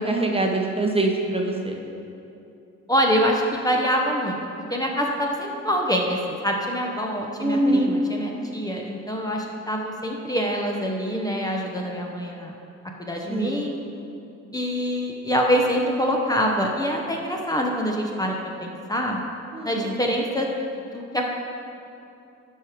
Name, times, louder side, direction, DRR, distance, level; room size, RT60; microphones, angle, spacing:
voice 1, 0.0-1.8 7.4-7.9 13.3-13.7 19.5-20.0, right 2 dB, 20° right, 1 dB, 1.0 m, -24 dB
voice 2, 2.9-4.4 4.7-12.5 13.0-13.8 14.5-18.3 18.6-19.2 19.6-20.5 20.9-21.3, equal, 10° left, 0 dB, 0.9 m, -25 dB
12.0 x 4.9 x 5.0 m, 2.7 s
cardioid pair, 90°, 30 cm